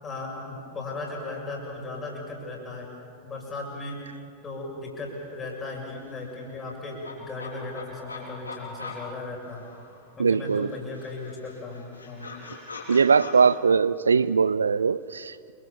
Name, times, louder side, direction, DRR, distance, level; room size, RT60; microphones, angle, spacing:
voice 1, 0.0-2.9 3.2-4.0 4.4-9.7 10.2-12.3, left 2 dB, 20° left, -2 dB, 7.3 m, -37 dB
sound 1, 5.2-5.3 5.5-10.1 10.5-13.4, left 4 dB, 80° left, 6.9 m, -43 dB
voice 2, 10.2-10.7 12.9-15.5, right 5 dB, 75° right, 18 dB, 0.6 m, -21 dB
28.0 x 25.5 x 7.2 m, 2.4 s
figure-of-eight pair, 90°, 0 cm